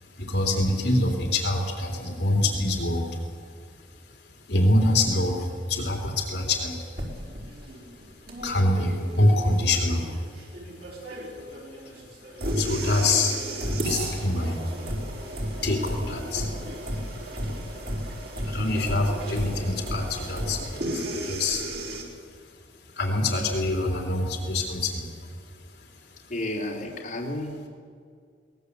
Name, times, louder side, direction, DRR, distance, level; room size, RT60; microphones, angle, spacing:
voice 1, 0.2-3.2 4.5-6.8 8.4-10.1 12.6-13.4 13.8-14.6 15.6-16.5 18.4-21.7 23.0-25.1, left 2 dB, 65° left, 2 dB, 3.3 m, -25 dB
sound 1, 7.0-22.0, right 1 dB, 60° right, 4.5 m, -33 dB
voice 2, 26.3-27.7, left 1 dB, 45° left, -2 dB, 3.4 m, -32 dB
22.0 x 19.5 x 8.2 m, 2.1 s
head